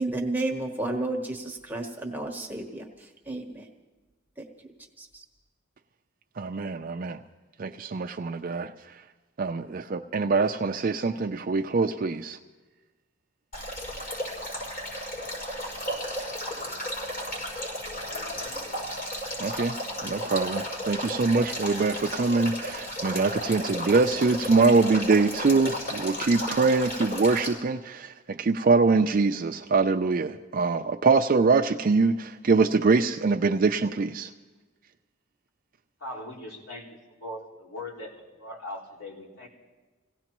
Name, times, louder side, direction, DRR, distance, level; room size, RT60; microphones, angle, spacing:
voice 1, 0.0-3.6 5.0-5.2, right 2 dB, 10° right, 0 dB, 1.1 m, -32 dB
voice 2, 6.4-7.2 7.6-8.7 9.4-12.4 19.4-19.7 20.0-34.3, right 4 dB, 45° right, 6 dB, 0.4 m, -24 dB
Male speech man speaking / Stream / Trickle dribble, 13.5-27.5, equal, 45° left, 6.2 m, -34 dB
voice 3, 36.0-36.8 37.2-38.1 38.4-39.5, left 1 dB, 70° left, -5 dB, 4.5 m, -39 dB
26.5 x 17.0 x 3.0 m, 1.2 s
head